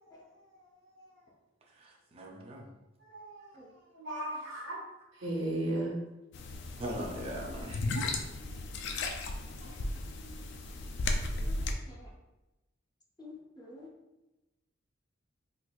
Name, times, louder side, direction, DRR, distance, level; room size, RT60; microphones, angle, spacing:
voice 1, 1.7-2.7 4.7-4.8 5.2-5.3 6.8-7.8, equal, 30° right, -1 dB, 0.5 m, -41 dB
voice 2, 3.1-3.5 3.9-4.8 5.2-5.9 9.6-9.7, right 1 dB, 90° right, -1 dB, 0.9 m, -35 dB
sound 1, 6.3-11.7, left 2 dB, 65° left, 0.4 m, -35 dB
voice 3, 11.4-12.1 13.2-13.9, left 2 dB, 20° left, -2 dB, 0.6 m, -50 dB
4.3 x 2.5 x 2.3 m, 1.0 s
head